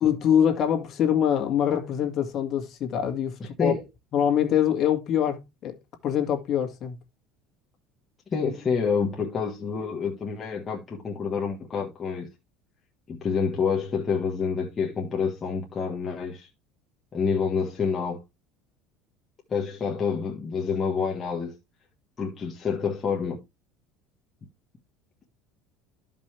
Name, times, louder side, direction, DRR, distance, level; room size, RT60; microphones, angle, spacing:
voice 1, 0.0-3.7 4.1-5.7 6.0-7.0, left 9 dB, 35° left, 2.0 m, -24 dB
voice 2, 3.4-3.8 8.3-12.3 13.1-16.5 17.1-18.2 19.5-21.5 22.2-23.4, left 5 dB, 20° left, 1.4 m, -28 dB
13.5 x 5.3 x 3.3 m
cardioid pair, 160°, 0 cm